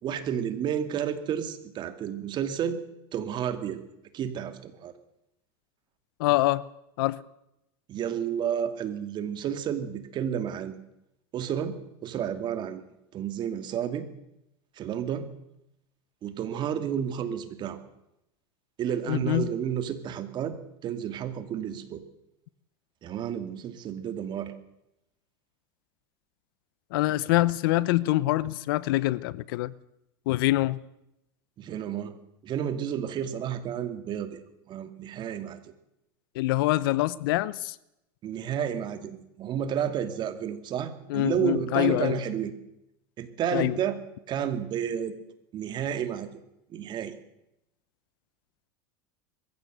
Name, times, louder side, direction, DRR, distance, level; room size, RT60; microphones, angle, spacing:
voice 1, 0.0-2.8 3.1-3.8 4.1-4.9 7.9-10.8 11.3-12.8 13.1-14.1 14.8-15.3 16.2-17.8 18.8-20.6 20.8-22.0 23.0-24.5 31.6-32.2 32.4-34.4 34.7-35.6 38.2-42.5 43.2-44.0 44.3-45.1 45.5-46.3 46.7-47.2, right 9 dB, 40° right, 2.7 m, -31 dB
voice 2, 6.2-6.6 7.0-7.2 19.1-19.5 26.9-29.7 30.3-30.8 36.3-37.7 41.1-42.2 43.5-43.8, left 17 dB, 75° left, 0.9 m, -25 dB
21.5 x 15.5 x 8.1 m
supercardioid pair, 120°, 12 cm